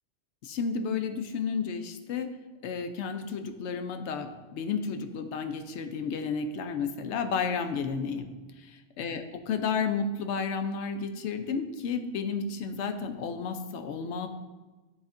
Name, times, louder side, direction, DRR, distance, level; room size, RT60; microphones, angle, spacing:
voice 1, 0.4-2.3 2.6-8.3 8.6-14.3, left 5 dB, 85° left, 7 dB, 0.9 m, -32 dB
9.8 x 4.1 x 2.5 m, 1.2 s
omnidirectional pair, 1.2 m